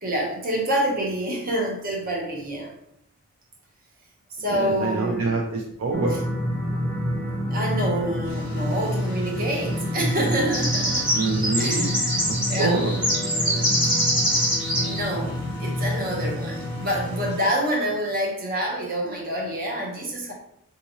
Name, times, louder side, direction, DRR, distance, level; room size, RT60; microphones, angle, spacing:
voice 1, 0.0-2.7 4.3-5.4 6.1-6.2 7.5-11.2 11.5-14.0 14.7-20.3, right 1 dB, 40° right, -1 dB, 0.8 m, -27 dB
voice 2, 4.5-6.2 11.1-11.9 12.3-12.9, right 3 dB, 65° right, 0 dB, 0.4 m, -26 dB
sound 1, 5.9-17.3, equal, 5° left, 0.4 m, -28 dB
sound 2, 8.6-8.7 9.5-9.7 10.0-15.0 15.3-15.4 15.8-15.9 16.7-16.8 17.2-17.4, equal, 20° right, 1.3 m, -24 dB
3.7 x 2.8 x 2.8 m, 0.74 s
head